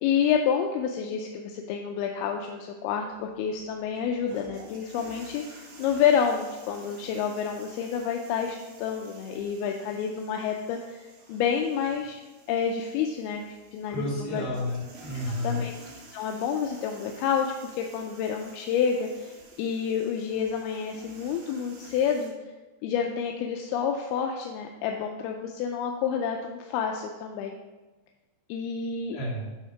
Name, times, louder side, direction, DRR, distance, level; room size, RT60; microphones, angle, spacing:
voice 1, 0.0-12.2 12.5-14.4 15.1-15.7 16.1-22.3 22.8-27.6 28.5-29.2, left 7 dB, 80° left, 3 dB, 2.4 m, -29 dB
sound 1, 3.1-22.3, right 2 dB, 85° right, 3.8 m, -50 dB
voice 2, 13.9-15.6 29.1-29.5, left 1 dB, 60° left, -6 dB, 4.5 m, -31 dB
9.2 x 4.2 x 5.7 m, 1.2 s
omnidirectional pair, 4.7 m